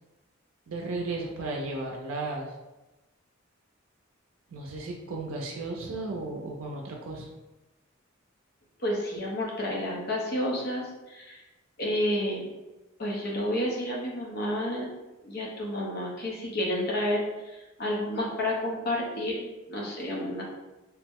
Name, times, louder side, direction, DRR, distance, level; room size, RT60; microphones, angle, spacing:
voice 1, 0.7-2.5 4.5-7.3, right 2 dB, 85° right, 0 dB, 0.4 m, -34 dB
voice 2, 8.8-11.4 11.8-12.5 13.0-14.9 15.2-20.4, left 1 dB, 50° left, -3 dB, 0.7 m, -30 dB
2.7 x 2.0 x 3.5 m, 1.1 s
head